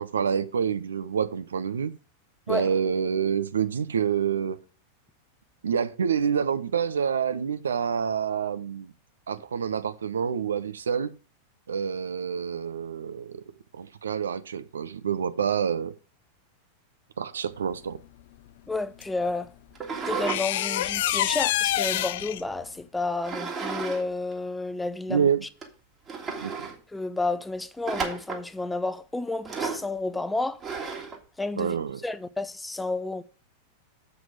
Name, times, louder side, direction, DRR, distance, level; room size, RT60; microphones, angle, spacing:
voice 1, 0.0-1.9 2.5-4.6 5.6-8.9 9.3-11.1 11.7-13.4 13.8-15.9 17.2-18.0 25.1-25.4 26.4-26.5 31.6-32.0, right 7 dB, 70° right, 0.6 m, -27 dB
voice 2, 18.7-19.5 20.1-25.3 26.9-30.6 31.4-31.8 32.0-33.2, left 2 dB, 5° left, 0.5 m, -31 dB
sound 1, 19.0-19.1 20.3-22.4, left 13 dB, 55° left, 0.4 m, -26 dB
sound 2, 19.8-20.4 20.8-22.2 23.2-24.0 24.3-24.4 25.1-25.2 25.6-25.7 26.1-26.8 27.9-28.5 29.5-29.9 30.6-31.2, right 5 dB, 25° right, 1.9 m, -33 dB
7.7 x 6.0 x 4.9 m
figure-of-eight pair, 90°, 0 cm